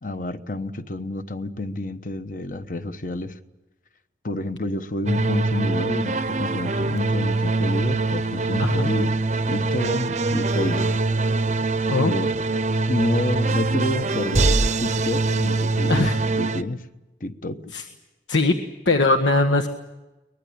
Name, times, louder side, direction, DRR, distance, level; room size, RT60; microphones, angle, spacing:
voice 1, 0.0-3.4 4.2-9.1 9.5-10.9 11.9-12.3 12.9-16.9 17.2-17.6, left 2 dB, 45° left, 10 dB, 1.1 m, -29 dB
sound 1, 5.1-16.6, right 3 dB, 40° right, 0.7 m, -23 dB
voice 2, 8.6-8.9 11.9-12.1 15.9-16.2 17.7-17.8 18.3-18.5 18.8-19.7, left 2 dB, 85° left, 5 dB, 1.4 m, -20 dB
23.5 x 20.5 x 8.7 m, 1.1 s
head